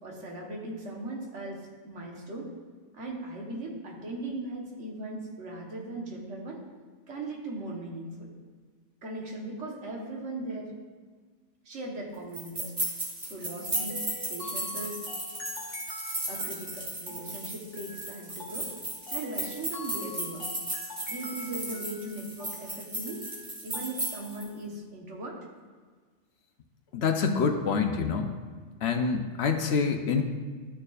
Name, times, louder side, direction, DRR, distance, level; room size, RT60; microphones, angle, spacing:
voice 1, 0.0-2.5 2.9-6.6 7.1-8.3 9.0-10.7 11.6-12.7 13.2-14.0 14.3-15.2 16.3-18.7 19.1-20.6 21.1-23.2 23.6-25.4, right 2 dB, 75° right, -1 dB, 1.5 m, -38 dB
sound 1, 12.3-24.5, right 1 dB, 35° right, 1.8 m, -35 dB
sound 2, 13.7-24.4, left 2 dB, 80° left, 1.5 m, -44 dB
voice 2, 26.9-28.3 28.8-30.2, left 5 dB, 65° left, 5 dB, 0.9 m, -26 dB
12.5 x 6.6 x 2.4 m, 1.5 s
omnidirectional pair, 1.2 m